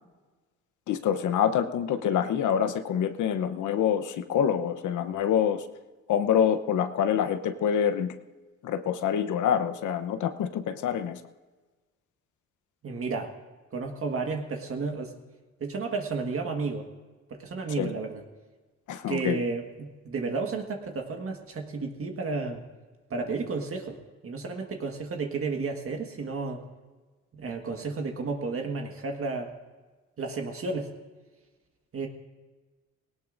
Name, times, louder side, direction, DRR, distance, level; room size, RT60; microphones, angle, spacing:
voice 1, 0.9-5.7 6.1-8.2 8.6-11.2 17.8-17.9 18.9-19.4, left 8 dB, 75° left, 9 dB, 0.9 m, -26 dB
voice 2, 12.8-13.3 13.7-15.1 15.6-16.9 17.3-18.2 19.1-22.6 23.1-24.0 24.2-26.6 27.3-29.5 30.2-30.9 31.9-32.1, right 4 dB, 45° right, 3 dB, 1.6 m, -32 dB
18.5 x 18.0 x 2.6 m, 1.3 s
cardioid pair, 90°, 30 cm